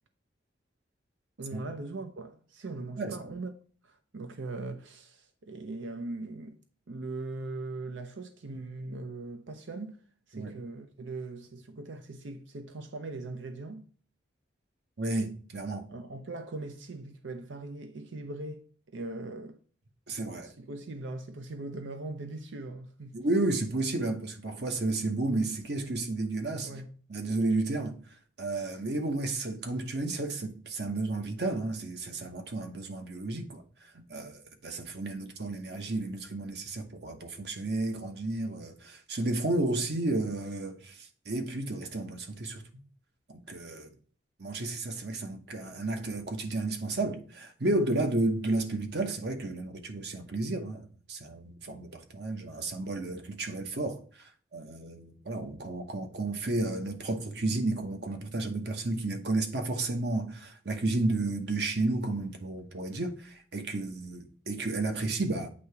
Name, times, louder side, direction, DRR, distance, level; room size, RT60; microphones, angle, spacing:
voice 1, 1.4-3.5 3.8-6.6 6.9-10.0 10.3-13.9 15.9-19.6 20.4-23.1 26.6-26.9, right 2 dB, 85° right, 0.6 m, -40 dB
voice 2, 15.0-15.9 20.1-20.5 23.1-26.7 27.1-27.9 28.4-33.6 33.9-42.6 43.3-43.9 44.4-65.5, right 2 dB, 60° right, 1.0 m, -32 dB
8.4 x 2.8 x 4.6 m
head